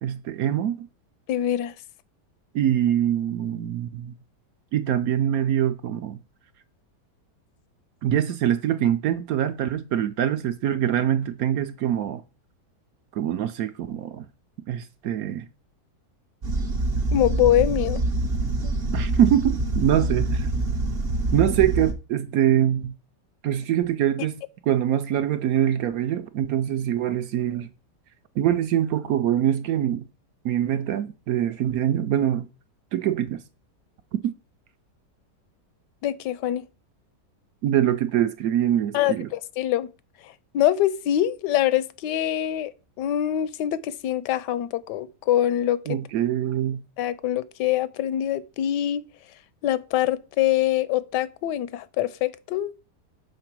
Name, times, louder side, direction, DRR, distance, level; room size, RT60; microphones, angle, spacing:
voice 1, 0.0-0.9 2.5-4.1 4.7-6.2 8.0-12.2 13.1-14.3 14.7-15.4 18.9-20.5 21.3-22.9 23.4-24.4 24.7-27.7 28.4-30.0 30.4-32.5 32.9-33.4 37.6-39.3 45.9-46.8, right 11 dB, 70° right, 1.0 m, -24 dB
voice 2, 1.3-1.7 17.1-18.0 18.6-18.7 36.0-36.7 38.9-39.9 40.2-42.7 43.0-46.0 47.0-49.0 49.6-52.7, left 12 dB, 80° left, 1.2 m, -24 dB
sound 1, 16.4-21.9, right 2 dB, 45° right, 0.9 m, -25 dB
6.5 x 3.8 x 6.0 m
omnidirectional pair, 1.8 m